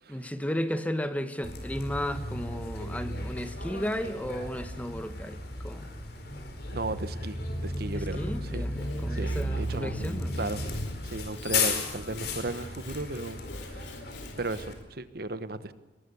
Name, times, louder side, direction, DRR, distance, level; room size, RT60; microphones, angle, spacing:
voice 1, 0.1-5.9 7.9-10.5, equal, 10° left, 1.1 m, -34 dB
Bus, 1.4-14.7, left 2 dB, 60° left, 4.6 m, -34 dB
voice 2, 6.7-8.6 9.1-9.9 10.4-10.6 11.1-14.1 14.4-15.7, right 2 dB, 55° right, 1.1 m, -35 dB
Sawing / Wood, 8.6-14.8, left 2 dB, 85° left, 3.3 m, -46 dB
22.5 x 20.0 x 7.0 m
head